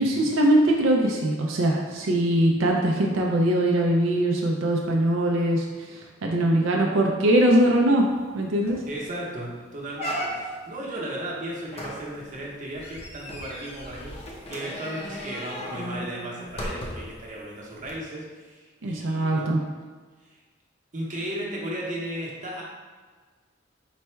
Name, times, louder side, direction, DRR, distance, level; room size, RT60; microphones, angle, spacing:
voice 1, 0.0-8.1 8.3-8.8 18.8-19.6, right 1 dB, 85° right, 0 dB, 0.5 m, -22 dB
sound 1, 8.2-8.3 8.7-9.0 9.4-9.5 10.0-10.7 11.7-17.2 17.8-17.9, equal, 30° left, 0.6 m, -36 dB
voice 2, 8.8-19.5 20.9-22.6, right 1 dB, 40° right, -4 dB, 0.9 m, -35 dB
4.1 x 2.2 x 4.4 m, 1.4 s
head